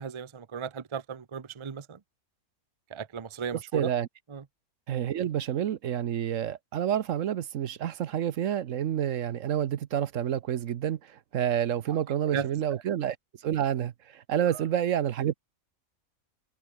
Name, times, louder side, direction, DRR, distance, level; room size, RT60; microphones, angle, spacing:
voice 1, 0.0-2.0 2.9-3.9 4.3-4.4 12.3-12.5 14.4-14.6, right 6 dB, 30° right, 0.6 m, -35 dB
voice 2, 3.7-4.1 4.9-13.2 13.4-15.3, right 10 dB, 65° right, 1.1 m, -29 dB
omnidirectional pair, 1.5 m